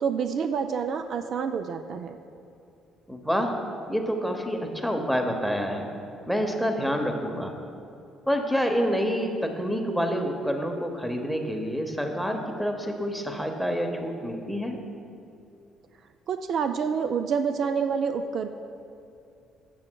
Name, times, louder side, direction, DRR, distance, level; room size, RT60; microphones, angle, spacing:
voice 1, 0.0-2.2 16.3-18.5, right 6 dB, 55° right, 7 dB, 0.3 m, -27 dB
voice 2, 3.1-3.5 3.9-5.9 6.3-7.5 8.3-14.8, equal, ahead, 4 dB, 0.8 m, -27 dB
13.0 x 7.6 x 2.2 m, 2.6 s
cardioid pair, 125°, 0 cm